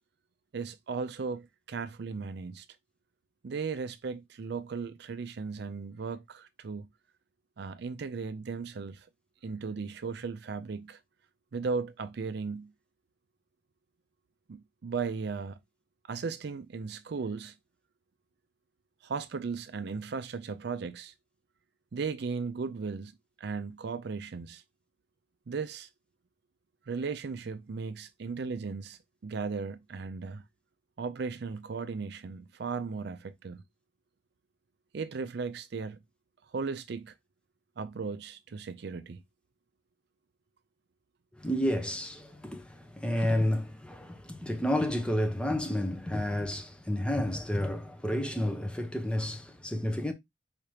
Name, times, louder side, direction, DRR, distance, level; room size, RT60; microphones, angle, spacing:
voice 1, 0.5-2.7 3.4-6.9 7.6-9.1 9.4-11.0 11.5-12.7 14.5-15.6 16.0-17.5 19.0-21.1 21.9-23.1 23.4-24.6 25.5-25.9 26.9-30.4 31.0-33.6 34.9-36.0 36.5-37.1 37.8-39.2, right 5 dB, 60° right, 0.4 m, -36 dB
voice 2, 41.4-50.1, left 1 dB, 5° left, 0.8 m, -30 dB
4.8 x 2.9 x 3.2 m
head